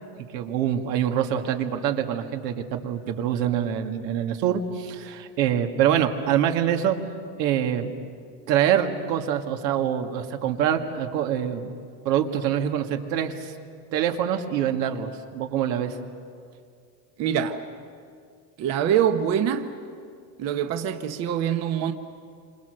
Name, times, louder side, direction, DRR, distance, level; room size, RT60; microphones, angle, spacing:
voice 1, 0.3-7.0 7.4-7.9 8.5-11.7 12.0-13.5 13.9-16.0, right 9 dB, 80° right, 2.2 m, -25 dB
voice 2, 17.2-17.6 18.6-19.7 20.4-21.9, right 9 dB, 30° right, 1.0 m, -24 dB
28.5 x 26.5 x 6.6 m
supercardioid pair, 155°, 49 cm